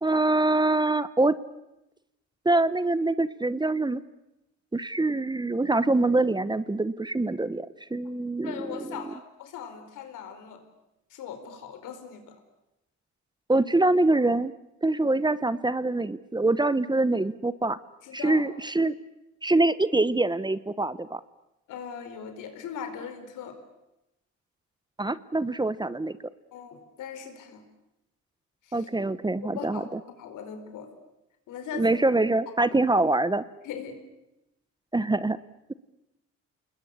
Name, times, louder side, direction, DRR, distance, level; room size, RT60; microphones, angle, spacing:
voice 1, 0.0-1.4 2.4-4.0 4.7-7.7 7.9-8.8 13.5-14.5 14.8-17.8 18.1-18.9 19.4-21.2 25.0-26.2 28.7-30.0 31.7-33.4 34.9-35.4, right 2 dB, 15° right, 16 dB, 1.0 m, -24 dB
voice 2, 8.4-10.6 11.1-12.4 18.0-18.4 21.7-23.6 26.5-27.6 28.6-28.9 29.5-29.9 30.2-30.9 31.5-31.9 33.6-34.0, left 7 dB, 90° left, 7 dB, 4.6 m, -39 dB
28.5 x 21.0 x 8.5 m, 0.90 s
cardioid pair, 90°, 30 cm